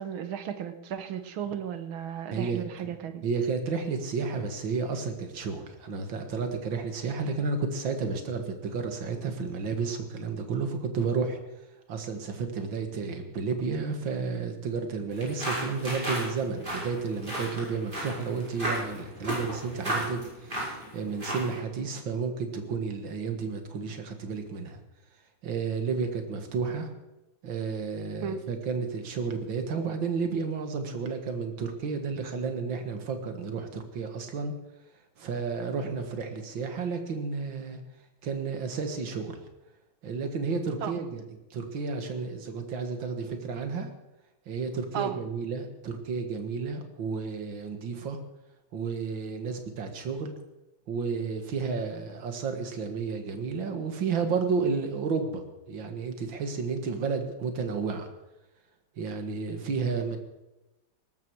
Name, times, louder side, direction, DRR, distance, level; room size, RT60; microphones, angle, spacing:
voice 1, 0.0-3.2 28.2-28.4 40.8-41.0 44.9-45.2, right 8 dB, 90° right, 10 dB, 1.9 m, -34 dB
voice 2, 2.3-3.0 3.2-11.4 11.9-24.8 25.4-26.9 27.4-34.5 35.2-37.8 38.2-39.4 40.0-41.2 41.5-43.9 44.5-48.2 48.7-50.3 50.9-58.1 59.0-60.2, right 5 dB, 70° right, 6 dB, 2.4 m, -32 dB
Footsteps Dirt (Multi One Shot), 15.1-21.6, right 1 dB, 25° right, 5.9 m, -34 dB
18.0 x 14.0 x 4.7 m, 1.0 s
omnidirectional pair, 2.2 m